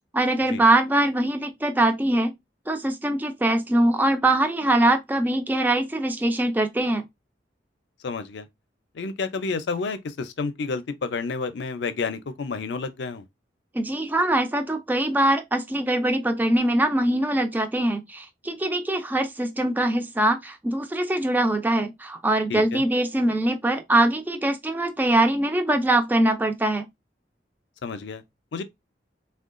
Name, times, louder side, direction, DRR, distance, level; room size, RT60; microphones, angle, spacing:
voice 1, 0.1-2.3 2.7-7.0 13.7-26.9, right 1 dB, 10° right, 0.3 m, -22 dB
voice 2, 8.0-8.5 8.9-13.2 22.5-22.8 27.8-28.2 28.5-28.6, left 4 dB, 75° left, 0.5 m, -30 dB
3.7 x 2.2 x 2.4 m
head